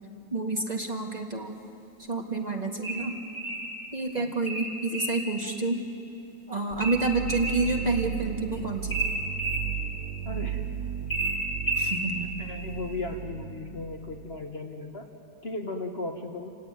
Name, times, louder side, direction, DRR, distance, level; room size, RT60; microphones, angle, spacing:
voice 1, 0.3-1.5 2.1-3.2 3.9-5.8 6.5-9.1 11.8-12.3, right 3 dB, 25° right, 2 dB, 1.8 m, -29 dB
sound 1, 2.8-3.7 4.5-5.2 6.8-7.7 8.9-9.7 11.1-12.0, right 2 dB, 75° left, 5.6 m, -30 dB
sound 2, 6.7-14.4, right 10 dB, 85° right, 1.5 m, -35 dB
voice 2, 10.2-10.6 12.4-15.1 15.4-16.5, left 3 dB, 40° left, 3 dB, 1.6 m, -36 dB
28.0 x 17.0 x 9.7 m, 2.8 s
omnidirectional pair, 1.7 m